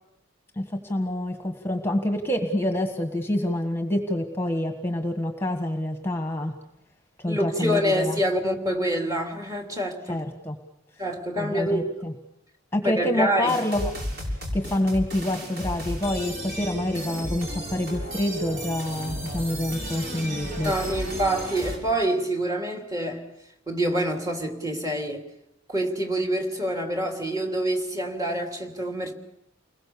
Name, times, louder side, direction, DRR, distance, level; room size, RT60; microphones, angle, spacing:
voice 1, 0.5-6.5 7.2-8.2 10.1-10.6 11.4-12.1 12.7-13.9 14.5-20.7, left 1 dB, 10° left, 1.6 m, -27 dB
voice 2, 7.3-10.3 11.0-11.9 12.8-13.5 20.6-23.3 23.7-25.2 25.7-29.1, right 1 dB, 15° right, 3.1 m, -26 dB
sound 1, 13.5-21.8, equal, 55° right, 6.8 m, -33 dB
29.5 x 21.5 x 7.0 m
head